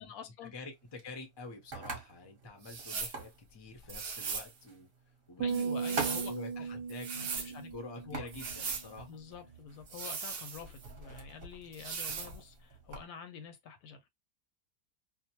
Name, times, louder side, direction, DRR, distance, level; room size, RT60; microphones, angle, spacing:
voice 1, 0.0-0.5 5.4-6.7 7.1-7.7 8.0-8.3 9.1-14.1, left 7 dB, 75° left, 1.0 m, -47 dB
voice 2, 0.5-4.9 5.3-9.2, left 3 dB, 40° left, 0.3 m, -48 dB
sound 1, 0.6-13.1, right 4 dB, 40° right, 1.0 m, -46 dB
sound 2, 2.6-3.2 3.9-4.5 5.5-6.4 6.9-7.5 8.3-8.9 9.9-10.9 11.7-12.3, right 5 dB, 65° right, 0.5 m, -39 dB
sound 3, 5.4-8.8, right 6 dB, 90° right, 1.2 m, -37 dB
2.8 x 2.0 x 2.8 m
omnidirectional pair, 1.7 m